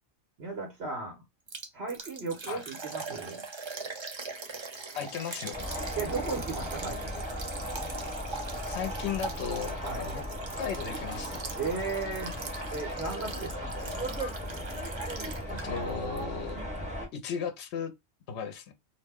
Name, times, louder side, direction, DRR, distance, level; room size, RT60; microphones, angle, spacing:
voice 1, 0.4-1.2 1.7-3.4 6.0-7.2 9.8-10.1 11.6-12.3 12.7-14.1, right 4 dB, 70° right, 1.2 m, -36 dB
Liquid, 1.5-15.9 16.2-16.3 16.8-16.9, right 4 dB, 40° right, 0.4 m, -42 dB
voice 2, 5.0-5.7 8.6-10.2 10.6-11.5 15.5-16.6 17.1-17.9 18.3-18.7, left 7 dB, 80° left, 0.9 m, -36 dB
sound 1, 5.5-17.1, equal, 5° right, 1.0 m, -36 dB
2.7 x 2.1 x 3.4 m
omnidirectional pair, 1.1 m